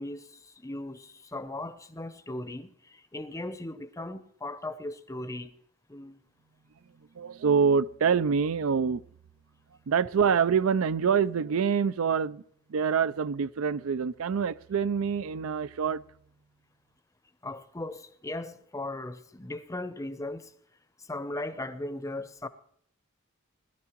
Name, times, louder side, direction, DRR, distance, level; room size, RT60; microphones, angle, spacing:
voice 1, 0.0-5.5 5.9-6.2 17.4-20.5 21.0-22.5, left 2 dB, 15° left, 0.6 m, -38 dB
voice 2, 7.2-9.0 9.9-12.4 12.7-16.0, right 6 dB, 85° right, 0.4 m, -26 dB
20.5 x 12.5 x 3.0 m
head